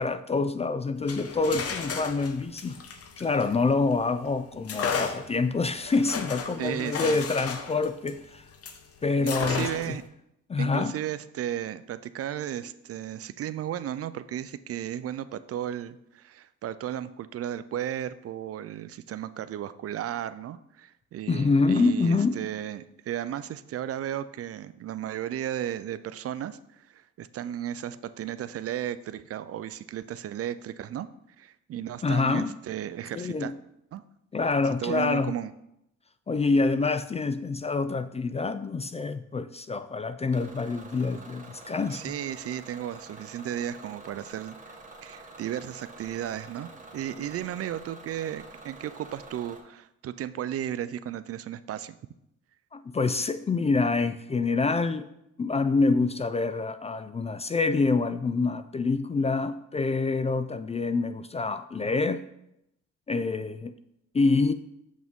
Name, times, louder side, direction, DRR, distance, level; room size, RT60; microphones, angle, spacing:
voice 1, 0.0-2.8 3.2-8.4 9.0-10.0 10.5-10.9 21.3-22.4 32.0-32.5 33.1-33.5 34.3-35.3 36.3-42.1 52.7-55.1 55.4-62.2 63.1-63.7 64.1-64.5, left 3 dB, 20° left, 12 dB, 0.3 m, -26 dB
sound 1, 1.0-4.0 4.7-8.8 9.3-10.0, left 6 dB, 50° left, 0.9 m, -34 dB
voice 2, 6.6-7.2 9.2-10.0 10.6-31.1 31.4-33.5 33.9-34.0 34.8-35.5 41.9-52.0, right 11 dB, 50° right, 14 dB, 0.4 m, -34 dB
Bus / Engine, 40.3-49.6, right 2 dB, 25° right, 1.5 m, -47 dB
7.3 x 6.1 x 3.6 m, 0.81 s
cardioid pair, 90°, 30 cm